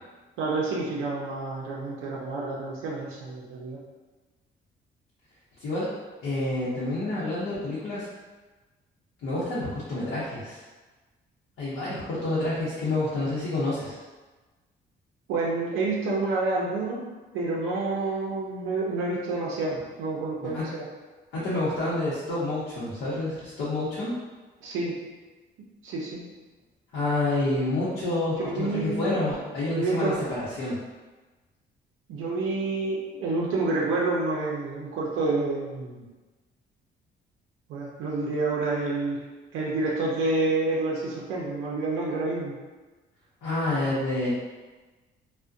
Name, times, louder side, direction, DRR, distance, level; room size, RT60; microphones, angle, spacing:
voice 1, 0.4-3.8 11.9-12.0 15.3-17.0 17.3-20.8 24.6-24.9 25.8-26.2 28.4-29.0 29.7-30.2 32.1-36.0 37.7-39.2 39.5-42.5, right 3 dB, 90° right, -4 dB, 0.4 m, -28 dB
voice 2, 6.2-8.1 9.2-10.6 11.6-14.0 20.5-20.7 21.3-24.1 26.9-30.1 30.6-30.8 43.4-44.3, left 2 dB, 80° left, -10 dB, 0.7 m, -28 dB
2.5 x 2.1 x 2.3 m, 1.3 s
cardioid pair, 90°, 20 cm